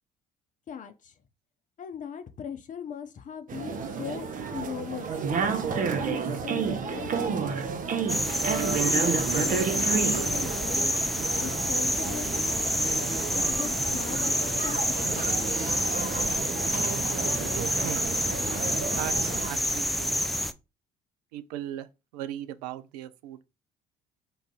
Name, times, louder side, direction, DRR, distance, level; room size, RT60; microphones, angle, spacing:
voice 1, 0.7-1.1 1.8-5.1 5.4-7.5 8.5-10.9 11.3-12.6 13.3-15.5, left 8 dB, 40° left, 0.7 m, -39 dB
sound 1, 3.5-19.5, right 6 dB, 40° right, 0.8 m, -31 dB
sound 2, 8.1-20.5, equal, ahead, 0.4 m, -28 dB
voice 2, 19.0-20.1 21.3-21.9 22.1-23.4, right 12 dB, 75° right, 0.4 m, -37 dB
3.8 x 2.6 x 3.7 m
hypercardioid pair, 55°, 20 cm